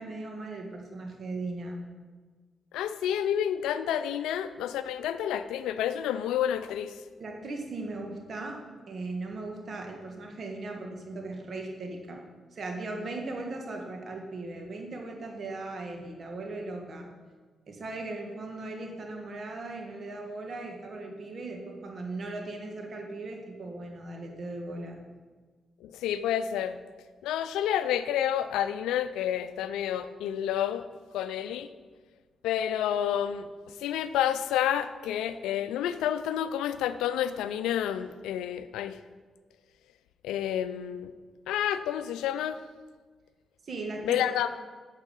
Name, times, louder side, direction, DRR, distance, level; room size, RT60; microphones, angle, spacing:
voice 1, 0.0-1.8 7.2-8.6 8.9-12.2 12.5-17.1 17.7-25.0 43.6-44.2, right 2 dB, 60° right, 2 dB, 1.9 m, -38 dB
voice 2, 2.7-6.9 25.8-26.8 27.2-30.9 31.1-31.7 32.4-33.5 33.8-39.0 40.2-41.1 41.5-42.6 44.0-44.5, left 10 dB, 90° left, 12 dB, 0.4 m, -29 dB
8.8 x 7.4 x 5.4 m, 1.4 s
supercardioid pair, 55°, 0 cm